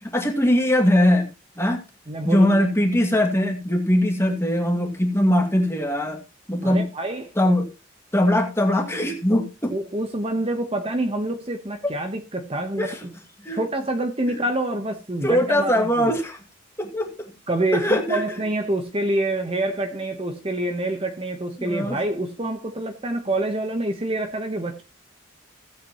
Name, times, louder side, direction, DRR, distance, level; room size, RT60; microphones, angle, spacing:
voice 1, 0.0-1.3 1.6-1.8 2.2-6.2 6.5-6.9 7.4-7.7 8.1-9.7 11.8-11.9 12.8-13.0 13.4-13.6 14.3-14.4 15.2-16.4 16.8-17.3 17.7-18.2 21.6-22.0, left 1 dB, 15° left, 2.0 m, -21 dB
voice 2, 2.1-2.6 6.6-7.3 9.7-13.1 13.5-16.2 17.5-24.8, right 1 dB, 30° right, 1.0 m, -27 dB
15.5 x 8.2 x 3.0 m
head